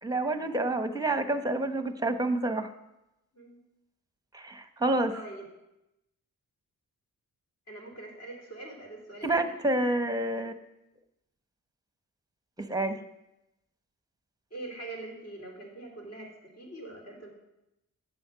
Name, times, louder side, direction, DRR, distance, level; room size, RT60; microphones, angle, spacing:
voice 1, 0.0-2.7 4.3-5.1 9.2-10.5 12.6-13.0, right 2 dB, 10° right, 9 dB, 1.0 m, -28 dB
voice 2, 5.1-5.4 7.7-9.5 14.5-17.3, right 2 dB, 40° left, 0 dB, 3.3 m, -43 dB
8.7 x 7.0 x 5.0 m, 0.90 s
supercardioid pair, 50°, 38 cm